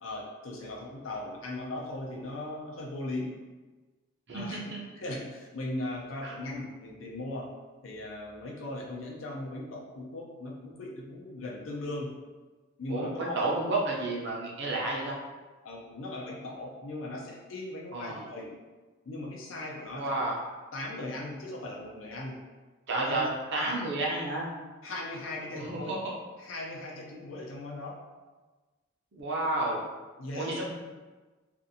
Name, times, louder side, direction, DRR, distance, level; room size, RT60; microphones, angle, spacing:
voice 1, 0.0-3.4 4.3-4.6 5.0-7.5 7.8-12.1 12.8-13.4 15.6-18.6 19.1-20.1 20.7-22.4 23.1-23.3 23.7-23.8 24.8-25.9 26.4-28.0 30.2-30.6, left 2 dB, 80° left, -2 dB, 0.6 m, -38 dB
voice 2, 4.3-4.8 6.2-6.4 12.9-15.2 17.9-18.2 19.9-20.4 22.9-24.5 25.5-26.1 29.1-29.8 30.3-30.7, right 2 dB, 60° right, -3 dB, 0.6 m, -31 dB
2.5 x 2.5 x 2.6 m, 1.3 s
head